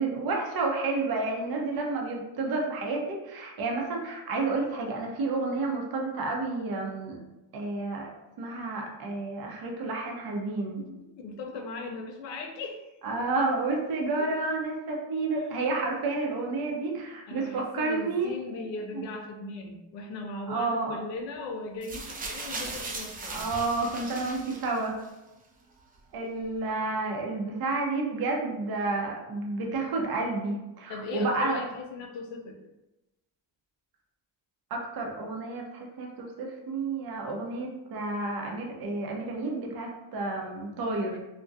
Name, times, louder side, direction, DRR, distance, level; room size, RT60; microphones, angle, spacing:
voice 1, 0.0-7.2 7.5-8.1 8.4-10.8 13.0-18.6 18.9-19.0 20.5-21.0 23.3-25.0 26.1-31.6 34.7-41.2, right 3 dB, 50° right, 0 dB, 0.7 m, -30 dB
voice 2, 10.8-12.9 14.2-14.3 15.3-15.6 17.3-23.4 30.9-32.6, left 3 dB, 70° left, 3 dB, 0.6 m, -38 dB
sound 1, 21.8-25.1 26.0-26.1, right 3 dB, 20° right, 0.3 m, -38 dB
2.3 x 2.1 x 2.5 m, 1.0 s
supercardioid pair, 75°, 47 cm